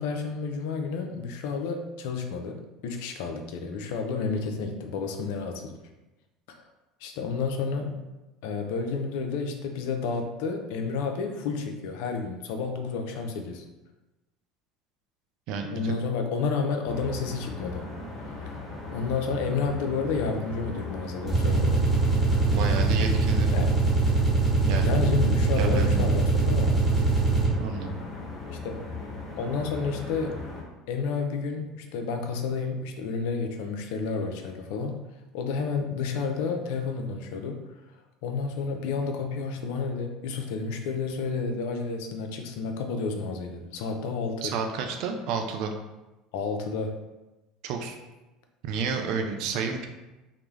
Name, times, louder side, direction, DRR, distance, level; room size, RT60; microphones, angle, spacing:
voice 1, 0.0-5.7 6.5-6.6 7.0-8.0 8.4-13.6 15.7-17.9 18.5-18.6 18.9-22.0 23.5-23.7 24.8-26.8 28.5-28.8 29.4-30.4 30.9-35.0 35.3-37.6 38.2-44.5 46.3-47.0, left 4 dB, 70° left, 5 dB, 0.3 m, -30 dB
voice 2, 15.5-15.9 22.5-23.5 24.7-24.9 25.5-26.1 27.6-28.0 44.4-45.7 47.6-48.0 48.6-49.9, right 5 dB, 65° right, 4 dB, 0.3 m, -31 dB
sound 1, 16.9-30.6, left 3 dB, 35° left, 1.0 m, -38 dB
sound 2, 21.2-27.8, right 3 dB, 20° right, 1.2 m, -23 dB
2.3 x 2.0 x 3.1 m, 1.1 s
hypercardioid pair, 75°, 0 cm